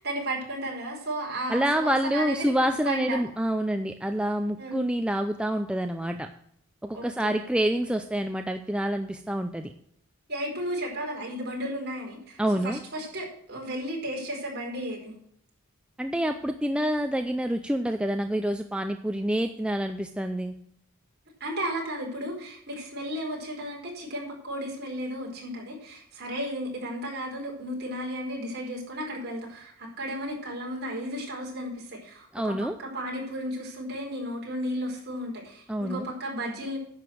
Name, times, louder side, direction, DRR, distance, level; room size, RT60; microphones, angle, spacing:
voice 1, 0.0-2.5 2.8-3.2 4.6-4.8 6.9-7.4 10.3-15.1 21.4-36.8, equal, 45° right, -2 dB, 4.6 m, -34 dB
voice 2, 1.5-6.3 6.8-9.7 12.4-12.8 16.0-20.5 32.3-32.8 35.7-36.1, right 1 dB, 5° right, 6 dB, 0.5 m, -27 dB
10.5 x 7.0 x 7.7 m, 0.67 s
head